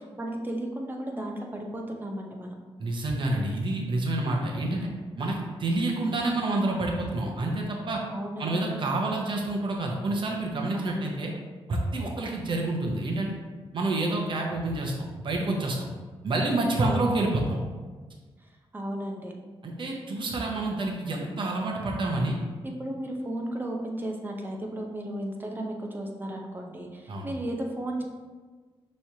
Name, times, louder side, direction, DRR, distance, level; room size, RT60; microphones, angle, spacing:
voice 1, 0.2-2.5 8.1-8.7 10.7-11.1 16.8-17.0 18.7-19.3 22.8-28.0, right 1 dB, 20° right, 1 dB, 0.7 m, -34 dB
voice 2, 2.8-4.9 5.2-8.0 8.4-11.3 11.7-13.3 13.7-15.0 15.2-15.9 16.2-17.6 19.6-22.4 27.1-27.3, right 2 dB, 50° right, 0 dB, 0.8 m, -28 dB
6.0 x 3.1 x 2.8 m, 1.4 s
cardioid pair, 110°, 10 cm